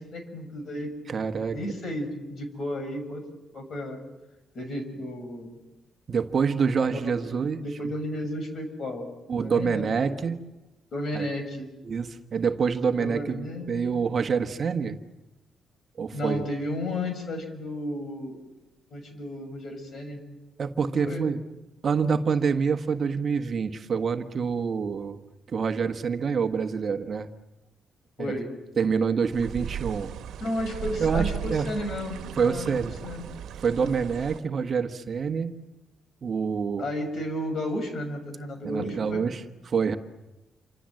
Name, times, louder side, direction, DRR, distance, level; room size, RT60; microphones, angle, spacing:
voice 1, 0.0-1.3 1.5-3.2 3.5-4.0 4.5-5.6 7.0-7.3 7.6-10.2 10.9-11.7 12.9-14.0 16.1-18.4 18.9-20.2 20.8-21.2 28.2-28.5 30.4-32.7 33.0-33.3 33.8-33.9 36.8-39.2, left 1 dB, 50° left, 7 dB, 6.6 m, -33 dB
voice 2, 1.1-1.6 6.1-7.6 9.3-10.4 11.1-11.3 11.8-15.0 16.0-16.5 20.6-21.4 21.8-27.3 28.2-28.3 28.8-30.1 31.0-31.7 32.4-32.9 33.6-35.5 36.2-36.8 38.6-40.0, right 6 dB, 40° right, 7 dB, 1.4 m, -26 dB
sound 1, 29.2-34.4, right 9 dB, 80° right, 1.4 m, -36 dB
28.5 x 26.0 x 7.8 m, 1.0 s
cardioid pair, 135°, 0 cm